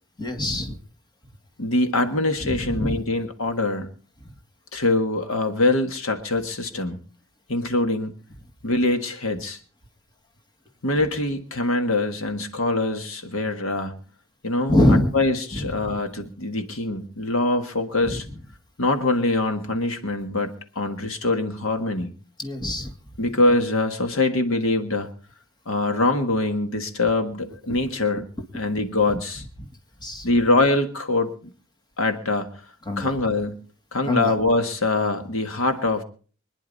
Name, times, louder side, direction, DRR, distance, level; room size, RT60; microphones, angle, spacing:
voice 1, 0.2-0.8 2.4-3.0 14.7-15.1 15.5-15.7 18.0-18.2 22.4-22.9 29.6-29.7 30.0-30.3 32.9-33.1 34.0-34.3, left 1 dB, 20° left, 4 dB, 1.9 m, -23 dB
voice 2, 1.6-3.9 4.7-7.0 7.5-8.1 8.6-9.6 10.8-14.0 14.4-18.3 18.8-22.1 23.2-25.1 25.7-28.3 28.5-29.4 30.2-31.5 32.0-32.5 33.0-33.6 33.9-36.0, left 2 dB, 70° left, 7 dB, 1.7 m, -23 dB
24.5 x 10.0 x 4.1 m, 0.40 s
head